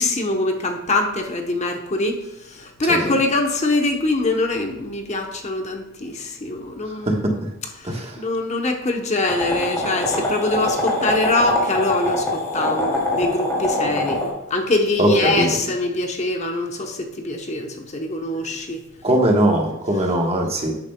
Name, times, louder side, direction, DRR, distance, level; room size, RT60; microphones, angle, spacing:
voice 1, 0.0-2.2 2.5-7.2 7.8-14.2 14.5-18.8, left 2 dB, 35° left, 3 dB, 0.9 m, -23 dB
voice 2, 7.1-7.5 7.8-8.2 15.0-15.6 19.0-20.8, right 1 dB, 30° right, 2 dB, 1.3 m, -20 dB
sound 1, 9.3-14.3, left 1 dB, 15° left, 2.9 m, -23 dB
11.0 x 8.8 x 2.3 m, 0.88 s
head